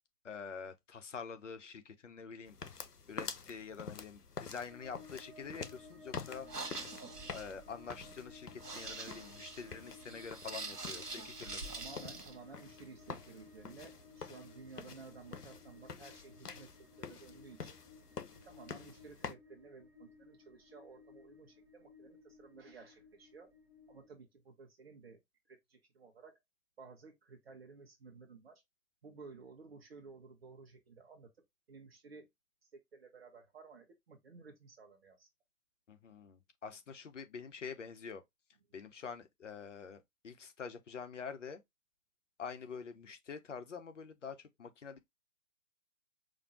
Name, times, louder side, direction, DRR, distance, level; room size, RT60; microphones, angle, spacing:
voice 1, 0.2-2.6 3.1-6.5 7.3-11.7 35.9-38.2 38.7-41.6 42.4-45.0, left 6 dB, 50° left, 0.9 m, -46 dB
sound 1, 2.5-19.3, left 5 dB, 80° left, 0.8 m, -48 dB
sound 2, 4.7-24.1, left 3 dB, 5° right, 0.6 m, -58 dB
sound 3, 6.4-12.3, right 3 dB, 85° right, 1.2 m, -45 dB
voice 2, 11.7-17.8 18.4-23.5 23.9-25.2 25.5-26.4 26.8-28.6 29.0-31.3 31.7-32.3 32.9-35.3, right 4 dB, 40° right, 0.9 m, -55 dB
4.9 x 2.6 x 2.8 m
figure-of-eight pair, 135°, 46 cm